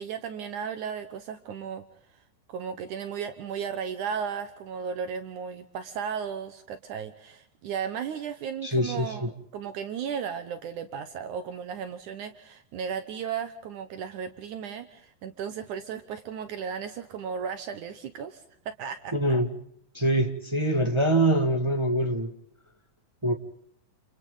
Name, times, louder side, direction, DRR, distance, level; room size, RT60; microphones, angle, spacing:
voice 1, 0.0-1.8 2.5-18.4 18.8-19.1, right 7 dB, 70° right, 2.4 m, -35 dB
voice 2, 8.6-9.3 19.1-19.5 19.9-22.3 23.2-23.3, right 1 dB, 15° right, 0.9 m, -24 dB
30.0 x 28.5 x 3.9 m
omnidirectional pair, 3.9 m